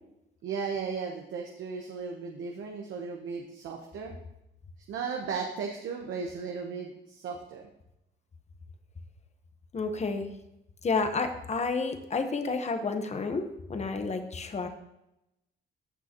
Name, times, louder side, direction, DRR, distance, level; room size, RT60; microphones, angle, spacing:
voice 1, 0.4-4.1 4.9-7.7, right 5 dB, 75° right, 2 dB, 1.1 m, -36 dB
voice 2, 9.7-10.3 10.8-14.7, left 4 dB, 35° left, 7 dB, 1.1 m, -30 dB
14.0 x 6.2 x 3.0 m, 0.87 s
cardioid pair, 90°, 20 cm